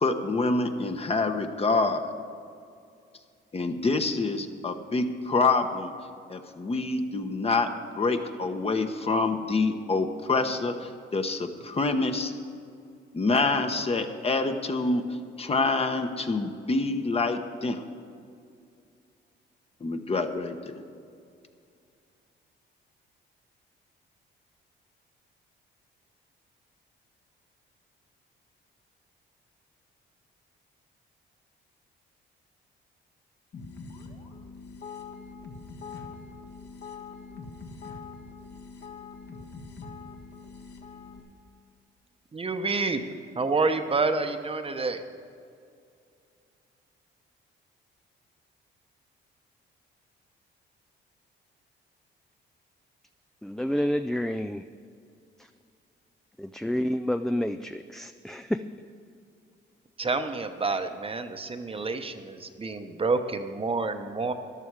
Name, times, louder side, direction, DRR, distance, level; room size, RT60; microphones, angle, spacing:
voice 1, 0.0-2.1 3.5-5.9 6.3-7.7 7.9-12.3 13.1-17.8 19.8-20.8, left 3 dB, 30° left, 7 dB, 1.0 m, -26 dB
sound 1, 33.5-41.2, left 4 dB, 60° left, 1.7 m, -43 dB
voice 2, 42.3-43.0 43.4-45.0 60.0-64.3, right 3 dB, 30° right, 8 dB, 0.9 m, -28 dB
voice 3, 53.4-54.7 55.4-55.5 56.4-58.6, left 1 dB, ahead, 9 dB, 0.3 m, -29 dB
13.5 x 11.0 x 4.8 m, 2.4 s
cardioid pair, 90°, 20 cm